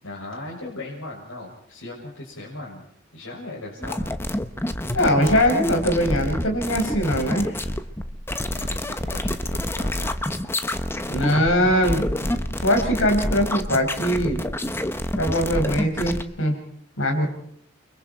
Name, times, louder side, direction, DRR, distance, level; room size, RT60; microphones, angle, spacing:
voice 1, 0.0-2.8 3.1-4.0 8.4-10.2, left 2 dB, 85° left, -5 dB, 7.0 m, -38 dB
sound 1, 3.8-16.2, left 1 dB, 10° left, 1.1 m, -28 dB
voice 2, 4.9-7.6 11.1-12.3 12.6-14.4 15.2-16.6 17.0-17.3, equal, 65° left, 3 dB, 5.6 m, -21 dB
29.5 x 25.0 x 4.6 m, 0.67 s
head